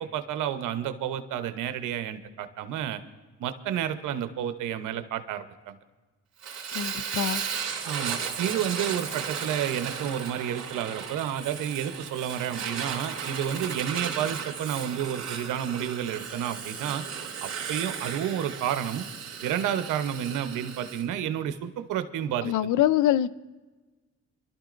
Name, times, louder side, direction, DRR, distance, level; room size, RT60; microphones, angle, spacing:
voice 1, 0.0-3.0 3.4-5.8 7.8-17.0 17.4-19.1 19.4-22.5, right 9 dB, 85° right, 10 dB, 0.9 m, -30 dB
Fire, 6.4-21.0, right 7 dB, 60° right, 2.7 m, -35 dB
voice 2, 6.7-7.4 22.4-23.3, left 12 dB, 80° left, 17 dB, 0.5 m, -24 dB
26.0 x 12.5 x 2.6 m, 1.2 s
cardioid pair, 90°, 30 cm